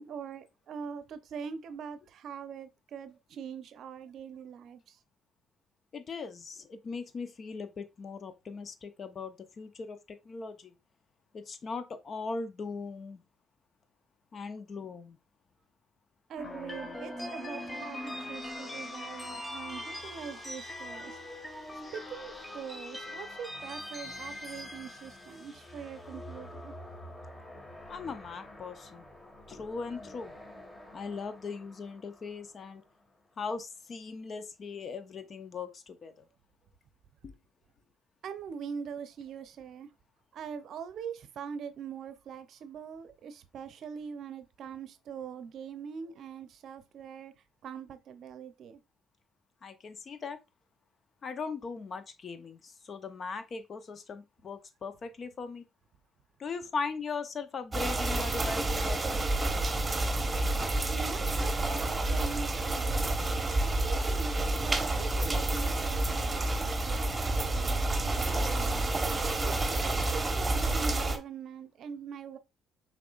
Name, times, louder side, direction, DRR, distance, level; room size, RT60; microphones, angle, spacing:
voice 1, 0.0-5.0 16.3-21.2 21.9-26.7 38.2-39.9 40.3-47.3 47.6-48.8 60.9-68.9 69.4-72.4, right 7 dB, 65° right, 0.6 m, -43 dB
voice 2, 5.9-10.7 11.3-13.2 14.3-15.2 27.9-29.0 29.5-30.3 30.9-32.8 33.4-36.3 37.2-37.3 49.6-50.4 51.2-55.7 56.4-59.2, left 4 dB, 50° left, 0.7 m, -39 dB
sound 1, 16.4-32.6, left 1 dB, 25° left, 1.4 m, -43 dB
sound 2, 57.7-71.2, right 2 dB, 25° right, 1.0 m, -29 dB
6.0 x 3.7 x 2.4 m
hypercardioid pair, 60°, 0 cm